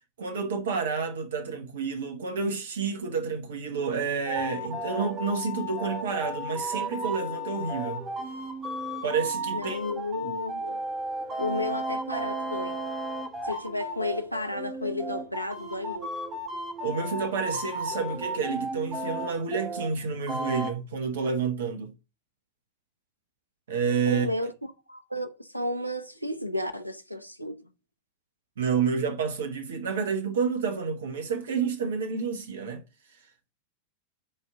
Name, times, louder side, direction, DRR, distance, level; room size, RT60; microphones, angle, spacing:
voice 1, 0.2-8.0 9.0-9.8 10.2-10.3 16.8-21.9 23.7-24.3 28.6-32.8, right 5 dB, 60° right, 1.1 m, -29 dB
sound 1, 4.3-19.9 20.3-20.7, right 1 dB, 25° right, 1.8 m, -34 dB
voice 2, 9.5-10.8 11.4-12.8 13.4-16.1 24.0-24.5 24.9-27.6, left 1 dB, 90° right, 0.9 m, -32 dB
6.1 x 4.6 x 5.9 m
figure-of-eight pair, 90°, 0 cm